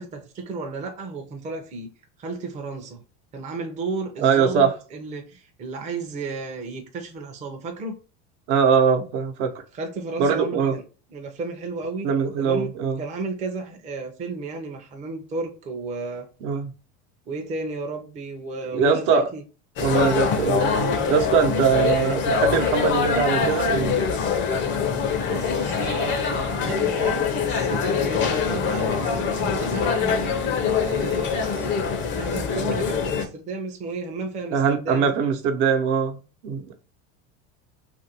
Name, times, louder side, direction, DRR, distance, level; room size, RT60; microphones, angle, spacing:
voice 1, 0.0-1.9 2.2-3.0 3.3-8.0 9.7-10.8 11.1-12.1 12.4-16.3 17.3-19.4 25.2-30.3 30.7-31.7 32.1-35.1, right 3 dB, 20° right, 0.5 m, -33 dB
voice 2, 4.2-4.7 8.5-9.5 10.2-10.7 12.0-13.0 16.4-16.7 18.7-19.3 19.8-24.0 34.5-36.2 36.4-36.7, right 6 dB, 70° right, 0.9 m, -22 dB
sound 1, 19.8-33.3, left 6 dB, 35° left, 0.5 m, -24 dB
2.9 x 2.6 x 2.7 m
supercardioid pair, 145°, 35 cm